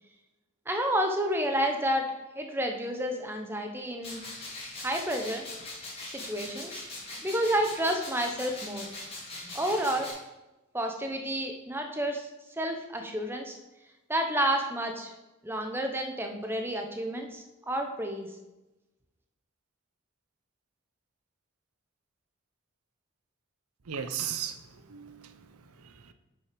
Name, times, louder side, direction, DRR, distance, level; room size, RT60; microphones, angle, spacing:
voice 1, 0.7-4.2 4.8-5.5 6.2-6.8 7.2-8.9 9.5-10.1 10.7-12.3 12.6-13.6 14.1-15.1 15.4-18.3, right 1 dB, 10° right, 3 dB, 0.8 m, -30 dB
sound 1, 4.0-10.1, left 2 dB, 25° left, 2.1 m, -41 dB
voice 2, 23.9-25.5 25.8-26.1, right 8 dB, 80° right, 10 dB, 0.7 m, -37 dB
7.7 x 5.8 x 5.1 m, 1.0 s
head